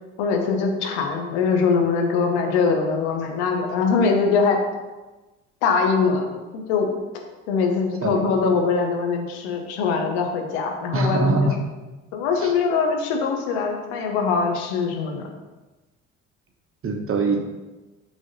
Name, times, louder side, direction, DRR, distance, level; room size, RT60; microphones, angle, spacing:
voice 1, 0.2-4.6 5.6-6.3 6.7-6.9 7.5-11.5 12.1-15.3, left 5 dB, 65° left, 2 dB, 1.1 m, -22 dB
voice 2, 10.9-11.6 12.4-12.5 16.8-17.4, right 2 dB, 35° right, 3 dB, 1.1 m, -22 dB
5.1 x 3.4 x 5.4 m, 1.1 s
figure-of-eight pair, 45°, 37 cm